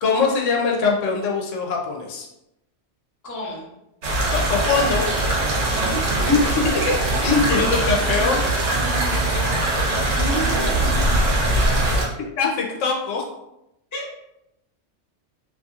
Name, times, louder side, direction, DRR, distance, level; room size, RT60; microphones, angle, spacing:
voice 1, 0.0-2.3 4.3-5.1 6.2-8.4 12.4-13.2, left 4 dB, 85° left, 0 dB, 0.9 m, -22 dB
voice 2, 3.2-3.7 5.7-6.2 9.3-9.4 9.8-10.8 13.9-14.0, right 1 dB, 20° left, -5 dB, 0.6 m, -31 dB
sound 1, 4.0-12.0, right 2 dB, 75° right, 1.0 m, -21 dB
2.7 x 2.5 x 2.3 m, 0.86 s
omnidirectional pair, 1.3 m